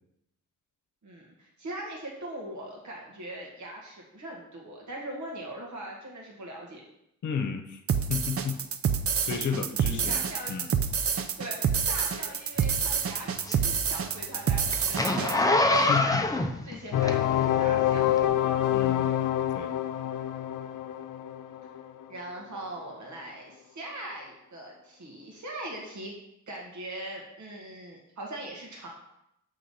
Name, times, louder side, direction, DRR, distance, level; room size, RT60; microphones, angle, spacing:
voice 1, 1.0-6.8 10.1-10.6 11.4-18.2 22.1-26.1 26.5-28.9, right 1 dB, 65° right, -1 dB, 1.7 m, -40 dB
voice 2, 7.2-7.8 8.1-8.6 9.2-10.2 10.5-10.7 15.7-16.2 18.7-19.1 19.5-19.7, left 6 dB, 65° left, 5 dB, 0.9 m, -32 dB
sound 1, 7.9-15.3, right 7 dB, 45° right, 0.5 m, -27 dB
Zipper (clothing), 12.6-17.6 18.1-18.2, left 2 dB, 10° left, 0.5 m, -26 dB
sound 2, 16.9-22.6, left 12 dB, 85° left, 0.6 m, -27 dB
7.9 x 3.7 x 5.5 m, 0.81 s
wide cardioid pair, 140°, 31 cm